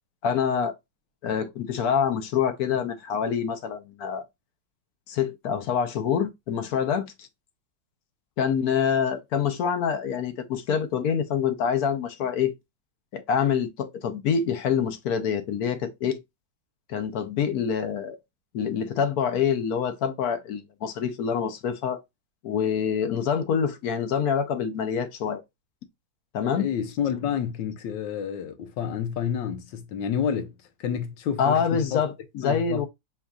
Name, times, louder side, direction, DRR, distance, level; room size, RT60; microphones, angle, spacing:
voice 1, 0.2-0.7 1.2-4.2 5.1-7.3 8.4-12.5 13.1-16.2 16.9-18.2 18.5-22.0 22.4-25.4 26.3-26.7 31.4-32.9, left 7 dB, 65° left, 1.1 m, -26 dB
voice 2, 26.5-30.5 30.8-32.0 32.4-32.9, left 8 dB, 85° left, 1.5 m, -29 dB
7.0 x 2.5 x 2.3 m
omnidirectional pair, 2.0 m